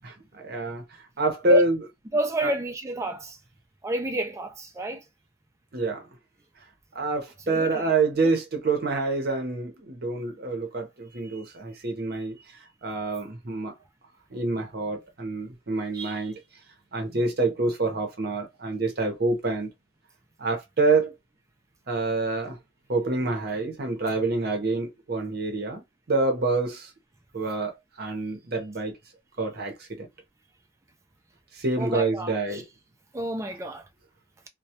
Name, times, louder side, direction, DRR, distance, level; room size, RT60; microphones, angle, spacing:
voice 1, 0.0-0.8 1.2-1.8 2.4-2.5 5.7-6.0 6.9-12.4 12.8-13.7 14.3-16.4 16.9-19.7 20.4-21.1 21.9-22.6 22.9-25.8 26.1-26.9 27.3-29.0 29.4-30.1 31.5-32.6, right 3 dB, 55° right, 0.7 m, -27 dB
voice 2, 2.1-3.4 3.8-5.1 7.5-7.9 11.1-11.4 31.8-32.6 33.1-33.9, right 1 dB, 15° right, 0.3 m, -30 dB
2.3 x 2.1 x 2.7 m
head